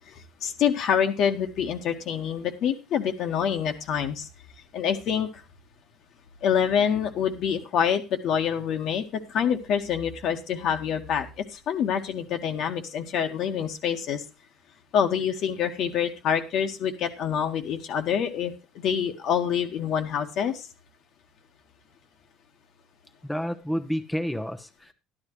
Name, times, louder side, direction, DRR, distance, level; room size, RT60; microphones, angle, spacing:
voice 1, 0.4-4.3 4.7-5.3 6.4-14.2 14.9-20.6, left 8 dB, 60° left, 5 dB, 1.8 m, -26 dB
voice 2, 23.2-24.9, equal, 5° left, 6 dB, 1.1 m, -30 dB
12.0 x 11.5 x 3.2 m, 0.28 s
hypercardioid pair, 75°, 0 cm